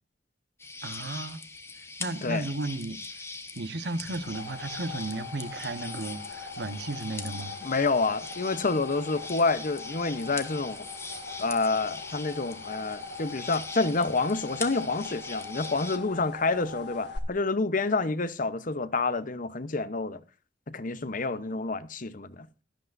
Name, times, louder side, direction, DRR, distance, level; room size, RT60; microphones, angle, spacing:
sound 1, 0.6-16.0, left 3 dB, 15° left, 1.2 m, -42 dB
voice 1, 0.8-1.4 2.0-3.2 3.5-7.5 21.3-21.6, right 2 dB, 70° right, 1.2 m, -34 dB
sound 2, 4.0-17.2, left 5 dB, 70° left, 2.2 m, -42 dB
voice 2, 7.6-10.8 11.4-20.2 20.7-22.6, left 3 dB, 50° left, 0.9 m, -28 dB
17.0 x 12.0 x 2.6 m
head